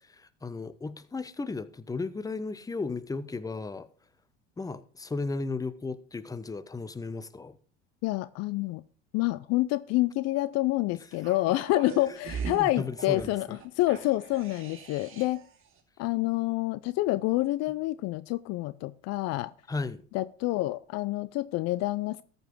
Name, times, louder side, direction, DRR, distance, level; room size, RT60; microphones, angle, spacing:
voice 1, 0.4-3.9 4.6-7.6 12.6-13.6 19.7-20.0, left 3 dB, 10° left, 0.8 m, -35 dB
voice 2, 8.0-8.8 9.1-15.4 16.0-19.5 20.1-22.2, left 18 dB, 55° left, 0.6 m, -28 dB
sound 1, 11.1-15.5 15.8-15.9, right 6 dB, 45° right, 2.6 m, -41 dB
13.5 x 5.4 x 6.0 m
hypercardioid pair, 80°, 31 cm